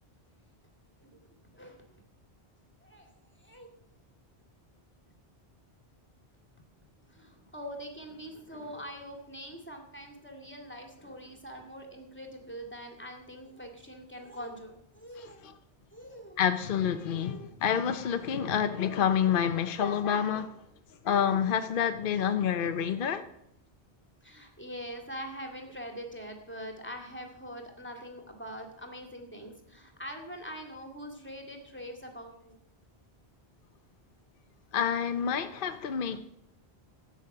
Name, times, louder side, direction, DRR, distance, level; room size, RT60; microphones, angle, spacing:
voice 1, 1.0-1.8 2.8-3.1 3.4-3.7 7.1-15.5 15.9-16.4 17.1-17.5 19.2-19.3 19.8-20.1 22.2-22.3 24.2-32.6, equal, 10° left, 2.2 m, -44 dB
voice 2, 15.2-15.5 16.4-20.5 21.0-23.2 34.7-36.2, left 8 dB, 60° left, 0.8 m, -28 dB
13.0 x 9.0 x 6.6 m
omnidirectional pair, 1.0 m